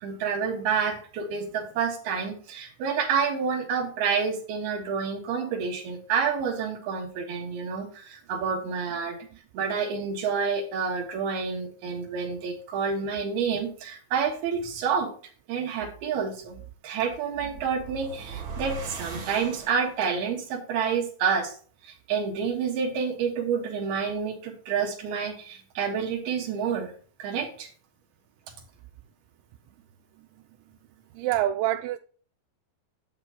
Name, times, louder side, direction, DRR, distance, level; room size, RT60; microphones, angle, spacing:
voice 1, 0.0-9.2 9.5-15.1 15.5-16.6 16.8-21.6 21.8-26.9 27.2-27.7, right 6 dB, 65° right, 3.1 m, -29 dB
sound 1, 17.3-20.2, right 3 dB, 40° right, 3.8 m, -39 dB
voice 2, 31.2-32.0, right 13 dB, 90° right, 2.9 m, -26 dB
10.5 x 9.6 x 2.9 m
omnidirectional pair, 5.2 m